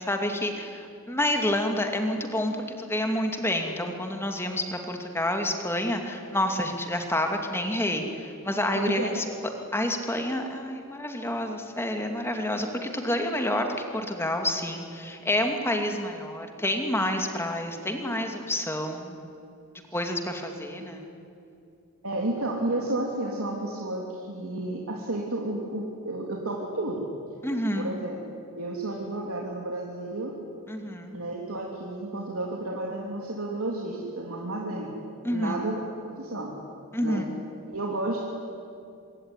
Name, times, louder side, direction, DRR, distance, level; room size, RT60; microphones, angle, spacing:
voice 1, 0.0-9.3 9.7-19.2 19.9-21.0 27.4-27.9 30.7-31.2 35.2-35.5 36.9-37.2, left 1 dB, 10° left, 4 dB, 2.5 m, -28 dB
voice 2, 8.7-9.2 20.7-20.9 22.0-27.1 27.7-28.1 28.5-30.3 31.1-34.9 35.3-35.8 36.2-36.6 37.0-37.3 37.7-38.2, right 2 dB, 85° right, -2 dB, 3.3 m, -31 dB
25.5 x 23.0 x 9.8 m, 2.6 s
head